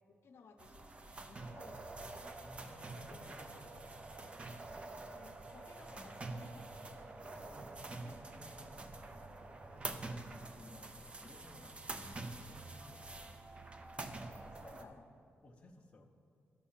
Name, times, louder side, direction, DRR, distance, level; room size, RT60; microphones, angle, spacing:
voice 1, 0.1-1.0 1.3-2.4 3.1-3.2 4.8-6.7 14.5-15.1, left 4 dB, 60° left, 4 dB, 0.8 m, -59 dB
sound 1, 0.6-14.8, right 2 dB, 25° right, 0.5 m, -47 dB
voice 2, 1.5-1.8 2.4-4.1 4.5-5.0 7.0-13.4 15.4-16.1, left 1 dB, 25° left, 1 dB, 0.7 m, -58 dB
11.5 x 5.5 x 7.3 m, 2.4 s
wide cardioid pair, 180°, 5 cm